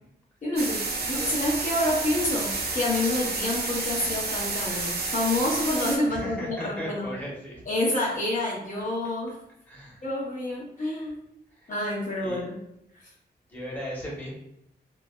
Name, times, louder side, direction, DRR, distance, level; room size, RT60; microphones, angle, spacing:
voice 1, 0.4-7.1 7.7-9.4 10.0-11.2 11.7-12.6, left 1 dB, 50° left, -4 dB, 0.7 m, -28 dB
sound 1, 0.6-6.0, right 3 dB, 65° right, 0.5 m, -30 dB
voice 2, 6.0-7.6 9.7-10.0 11.5-11.7 12.2-12.5 13.5-14.3, equal, 10° left, -5 dB, 0.9 m, -37 dB
3.1 x 2.1 x 2.2 m, 0.79 s
wide cardioid pair, 95°, 17 cm